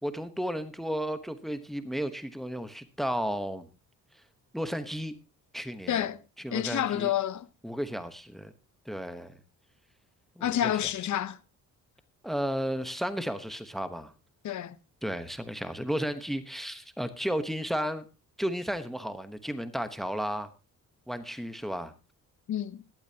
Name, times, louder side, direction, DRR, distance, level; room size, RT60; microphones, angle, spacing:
voice 1, 0.0-3.7 4.5-5.1 5.5-6.1 6.4-7.1 7.6-8.5 8.9-9.3 10.4-10.7 12.2-14.1 15.0-18.1 18.4-20.5 21.1-21.9, equal, ahead, 1.1 m, -33 dB
voice 2, 5.9-6.2 6.5-7.5 10.4-11.4 14.4-14.7 22.5-22.8, left 11 dB, 60° left, 0.9 m, -29 dB
17.5 x 12.0 x 2.9 m
cardioid pair, 155°, 34 cm